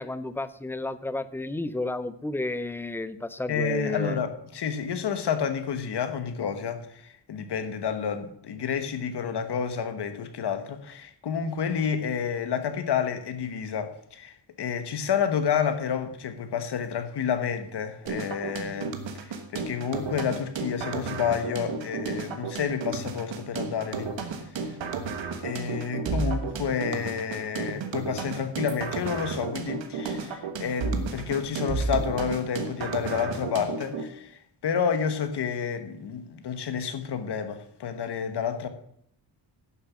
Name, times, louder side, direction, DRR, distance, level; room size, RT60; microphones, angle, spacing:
voice 1, 0.0-4.2, left 2 dB, 5° left, 13 dB, 0.3 m, -32 dB
voice 2, 3.5-18.9 19.2-24.1 25.4-38.7, left 7 dB, 65° left, 9 dB, 1.2 m, -30 dB
sound 1, 18.1-34.1, right 4 dB, 90° right, 1.4 m, -33 dB
11.0 x 6.9 x 6.1 m, 0.69 s
wide cardioid pair, 170°, 44 cm